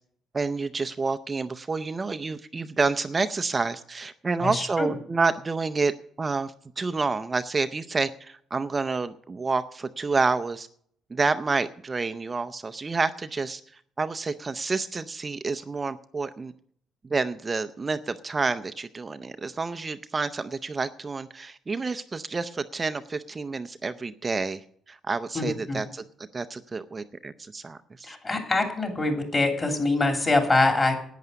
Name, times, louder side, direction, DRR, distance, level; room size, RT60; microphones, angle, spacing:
voice 1, 0.3-5.9 6.2-10.7 11.1-13.6 14.0-16.5 17.1-24.6 24.9-26.0 26.3-28.2, right 4 dB, 20° right, 10 dB, 0.5 m, -29 dB
voice 2, 4.4-4.9 25.3-25.8 28.1-30.9, left 2 dB, 25° left, 3 dB, 3.1 m, -24 dB
11.0 x 9.4 x 6.8 m, 0.62 s
cardioid pair, 135°, 0 cm